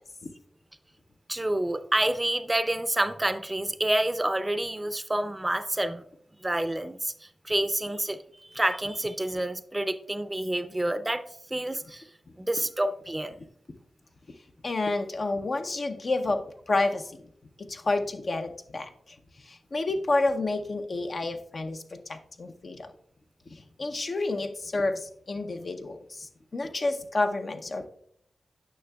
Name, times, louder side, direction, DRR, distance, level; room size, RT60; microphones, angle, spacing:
voice 1, 1.3-6.0 6.4-11.2 11.5-12.0 12.4-13.4, right 1 dB, 20° right, 12 dB, 0.5 m, -28 dB
voice 2, 14.6-17.2 17.6-19.2 19.5-22.9 23.5-27.9, left 2 dB, 60° left, 6 dB, 0.6 m, -30 dB
9.3 x 5.8 x 2.3 m, 0.66 s
cardioid pair, 40°, 0 cm